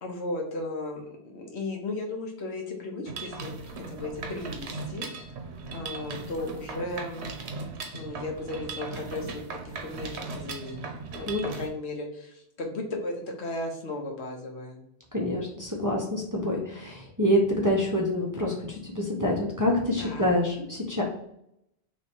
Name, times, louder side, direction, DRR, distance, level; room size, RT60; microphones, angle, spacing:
voice 1, 0.0-3.6 3.9-5.3 5.7-7.2 7.9-11.3 11.5-14.8 20.0-20.3, left 2 dB, 85° left, 2 dB, 1.2 m, -35 dB
Mechanisms, 3.1-11.7, right 4 dB, 90° right, 1.0 m, -38 dB
voice 2, 15.1-21.0, left 1 dB, 20° right, -2 dB, 0.6 m, -26 dB
3.3 x 3.1 x 4.3 m, 0.78 s
omnidirectional pair, 1.1 m